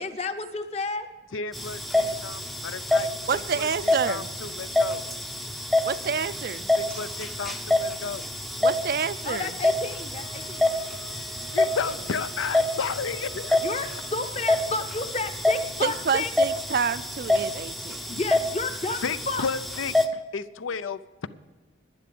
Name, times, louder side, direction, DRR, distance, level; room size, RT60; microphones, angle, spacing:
voice 1, 0.0-1.1 9.2-10.7 13.6-16.3 18.1-19.4, left 3 dB, 35° left, 8 dB, 0.8 m, -31 dB
voice 2, 1.3-5.0 6.8-8.6 11.5-13.6 19.0-21.3, left 5 dB, 90° left, 15 dB, 0.6 m, -33 dB
sound 1, 1.5-20.0, left 2 dB, ahead, 0.5 m, -27 dB
voice 3, 3.3-4.3 5.8-6.7 8.6-9.5 15.8-18.2, right 6 dB, 50° right, 16 dB, 0.4 m, -28 dB
Wind instrument woodwind instrument, 10.1-14.1, right 3 dB, 65° left, 2.1 m, -46 dB
11.0 x 10.5 x 6.9 m, 1.2 s
head